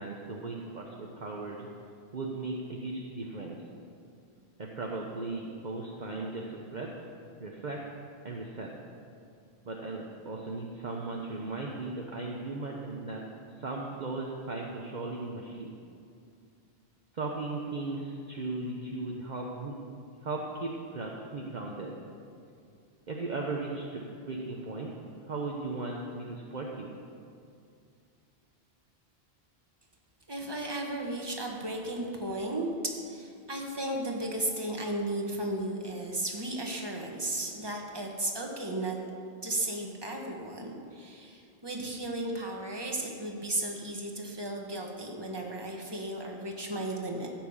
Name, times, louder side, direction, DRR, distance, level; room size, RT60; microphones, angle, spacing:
voice 1, 0.0-1.7 2.1-3.6 4.6-6.9 7.4-7.8 8.2-8.7 9.7-13.2 13.6-15.7 17.1-19.9 20.2-22.0 23.1-24.9 25.3-26.9, right 3 dB, 45° right, -1 dB, 1.1 m, -37 dB
voice 2, 30.3-39.0 39.4-47.3, right 1 dB, 25° right, 1 dB, 1.4 m, -34 dB
15.0 x 6.0 x 7.2 m, 2.4 s
omnidirectional pair, 1.1 m